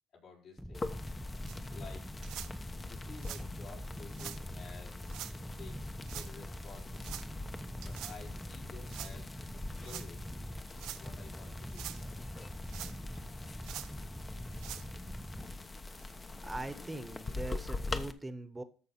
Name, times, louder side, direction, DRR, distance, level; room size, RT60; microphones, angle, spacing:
voice 1, 0.1-1.0 1.7-2.2 2.9-5.0 5.5-7.1 7.8-9.3 9.8-10.3 11.0-11.9, left 5 dB, 65° left, -2 dB, 4.6 m, -52 dB
sound 1, 0.6-15.6, equal, ahead, 0.6 m, -44 dB
sound 2, 0.7-18.1, left 3 dB, 30° left, 1.0 m, -44 dB
sound 3, 1.5-1.6 2.2-2.5 3.2-3.4 4.1-4.4 5.1-5.3 6.0-6.3 7.0-7.3 7.8-8.2 8.9-9.1 9.8-10.1 10.7-11.0 11.6-12.0 12.7-13.2 13.6-13.9 14.5-14.9 15.5-15.6 16.0-16.1 16.8-16.9, right 13 dB, 80° right, 0.6 m, -44 dB
voice 2, 16.4-18.6, right 2 dB, 15° right, 11 dB, 1.1 m, -41 dB
13.5 x 4.6 x 5.9 m, 0.40 s
supercardioid pair, 80°, 0 cm